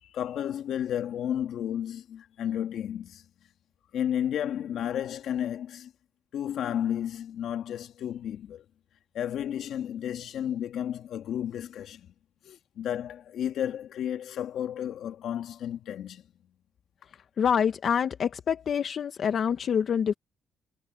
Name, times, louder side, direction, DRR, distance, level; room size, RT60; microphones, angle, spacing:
voice 1, 0.0-3.2 3.9-5.9 6.3-8.6 9.1-12.1 12.4-16.2, left 10 dB, 75° left, 2.4 m, -32 dB
voice 2, 17.4-20.1, left 7 dB, 55° left, 1.1 m, -26 dB
cardioid pair, 90°, 0 cm